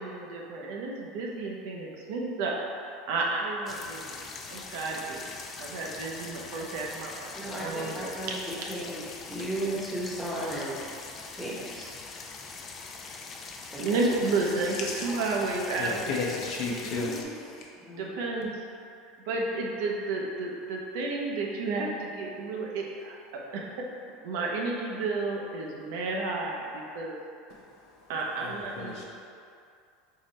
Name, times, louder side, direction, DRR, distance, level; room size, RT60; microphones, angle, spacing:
voice 1, 0.0-2.6 3.1-4.0 4.5-5.2 5.6-8.1 13.8-16.2 16.8-17.3 18.0-18.5 19.3-23.2 23.5-23.7 24.2-27.2 28.1-29.0, right 3 dB, 75° right, -1 dB, 0.7 m, -31 dB
sound 1, 3.7-17.2, left 4 dB, 30° left, 0.4 m, -42 dB
voice 2, 7.4-9.0 9.3-10.8 11.3-11.9 13.7-14.1 17.8-18.0, right 1 dB, 5° right, -6 dB, 0.9 m, -35 dB
voice 3, 15.8-17.7 27.5-28.1 28.4-29.0, left 3 dB, 60° left, -2 dB, 0.8 m, -34 dB
3.9 x 3.9 x 3.1 m, 2.4 s
supercardioid pair, 125°, 0 cm